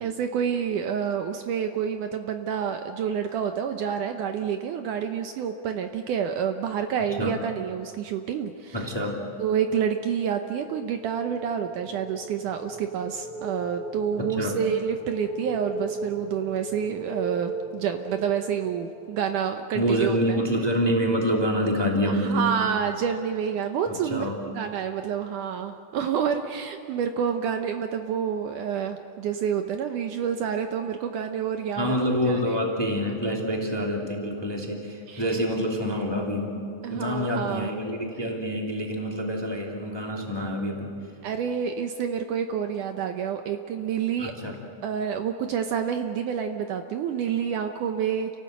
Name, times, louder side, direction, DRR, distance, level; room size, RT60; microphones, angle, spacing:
voice 1, 0.0-8.8 9.4-20.4 22.1-24.3 24.6-32.0 35.1-35.2 36.8-37.7 41.2-44.3 44.8-48.3, right 8 dB, 75° right, 6 dB, 2.2 m, -28 dB
voice 2, 8.7-9.2 14.2-14.6 19.7-22.5 23.9-24.4 31.8-36.6 36.9-40.9 44.2-44.6, equal, 10° left, 0 dB, 1.9 m, -27 dB
sound 1, 10.6-19.3, right 3 dB, 45° right, 2.4 m, -37 dB
29.5 x 17.5 x 8.0 m, 2.4 s
omnidirectional pair, 4.1 m